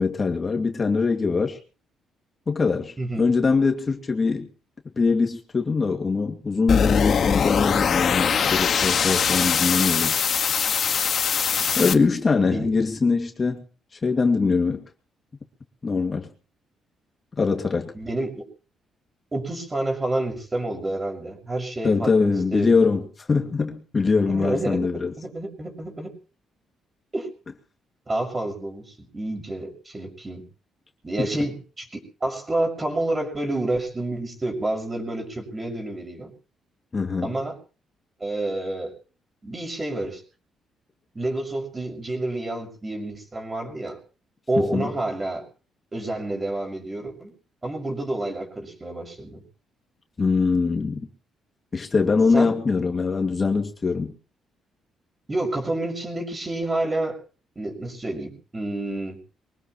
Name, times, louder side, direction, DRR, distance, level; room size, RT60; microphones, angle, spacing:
voice 1, 0.0-1.6 2.5-4.5 5.0-10.2 11.8-13.6 14.0-14.9 15.8-16.3 17.4-17.9 21.8-23.0 23.3-25.1 36.9-37.3 44.6-44.9 50.2-51.1 51.7-54.1, left 4 dB, 35° left, 4 dB, 2.3 m, -22 dB
voice 2, 3.0-3.3 11.5-11.7 12.5-12.7 17.9-18.5 19.3-22.9 24.3-26.1 27.1-27.3 28.1-30.5 31.0-36.3 37.2-37.6 38.2-38.9 39.4-40.2 41.1-44.0 44.5-45.4 45.9-47.3 47.6-49.4 52.3-52.5 55.3-57.2 57.6-59.2, right 2 dB, 25° right, 3 dB, 6.2 m, -29 dB
sound 1, 6.7-11.9, left 7 dB, 55° left, 1.7 m, -22 dB
24.0 x 18.5 x 3.1 m, 0.39 s
cardioid pair, 90°, 0 cm